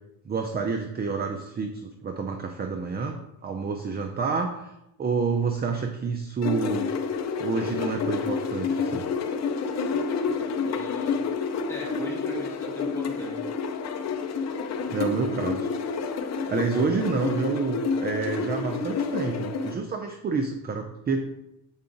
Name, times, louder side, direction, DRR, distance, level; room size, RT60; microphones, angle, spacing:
voice 1, 0.2-3.2 3.4-4.7 5.0-6.9 7.4-9.0 14.9-15.7 16.5-21.3, right 4 dB, 25° right, 4 dB, 0.5 m, -28 dB
sound 1, 6.4-19.7, left 5 dB, 45° left, 0.7 m, -29 dB
voice 2, 10.6-11.2 11.7-13.4, equal, 5° left, -4 dB, 2.1 m, -40 dB
7.2 x 4.7 x 3.9 m, 0.86 s
cardioid pair, 135°, 39 cm